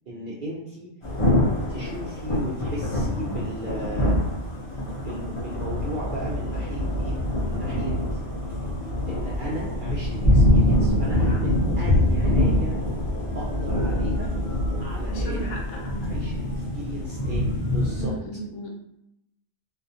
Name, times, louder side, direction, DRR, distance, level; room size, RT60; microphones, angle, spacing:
voice 1, 0.1-0.9 1.7-4.2 5.0-8.2 9.1-12.8 13.3-14.3 14.8-15.6 16.0-18.1, right 1 dB, 65° right, -5 dB, 0.5 m, -36 dB
Thunder / Rain, 1.0-18.1, left 1 dB, 35° left, 0.5 m, -24 dB
voice 2, 15.1-16.1 18.0-18.7, left 1 dB, 70° left, 0 dB, 0.9 m, -36 dB
2.4 x 2.3 x 2.7 m, 0.82 s
omnidirectional pair, 1.3 m